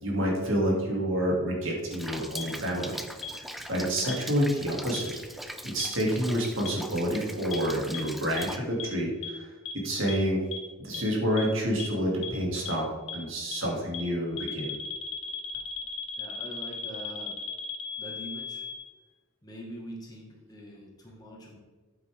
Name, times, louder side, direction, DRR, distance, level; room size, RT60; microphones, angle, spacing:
voice 1, 0.0-3.0 3.3-5.1 5.6-10.4 10.8-12.9 13.1-14.7, equal, 65° right, -2 dB, 2.7 m, -28 dB
Rain, 1.9-8.6, equal, ahead, 0.4 m, -41 dB
sound 1, 2.4-2.5 3.2-3.3 4.1-4.2 4.9-5.0 5.8-5.9 6.7-6.8 7.5-7.6 7.9-8.0 8.4-8.5 8.8-8.9 9.2-9.3 9.7-9.8 10.1-10.2 10.5-10.6 10.9-11.0 11.4-11.5 11.8-11.9 12.2-12.3 12.7-12.8 13.1-13.2 13.5-13.6 13.9-14.0 14.4-18.8, left 8 dB, 60° left, 1.2 m, -36 dB
voice 2, 16.2-17.4 18.0-18.7 19.4-21.6, equal, 20° left, -2 dB, 1.8 m, -43 dB
8.9 x 8.7 x 3.6 m, 1.3 s
head